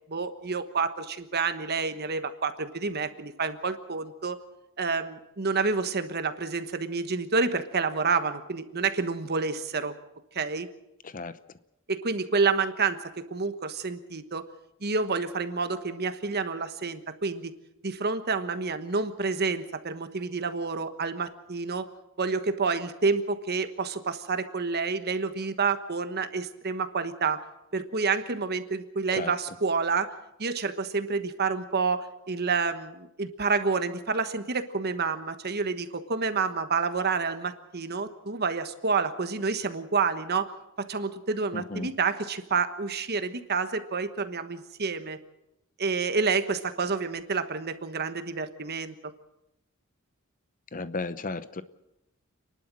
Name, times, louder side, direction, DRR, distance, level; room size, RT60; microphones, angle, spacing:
voice 1, 0.1-4.4 4.8-9.9 10.3-10.7 11.9-14.4 14.8-17.5 17.8-21.9 22.2-27.4 27.7-30.1 30.4-40.5 40.8-45.2 45.8-48.9, right 4 dB, 50° right, 10 dB, 1.2 m, -29 dB
voice 2, 41.5-41.9 50.7-51.6, left 3 dB, 40° left, 14 dB, 0.8 m, -34 dB
30.0 x 11.5 x 7.6 m, 0.88 s
head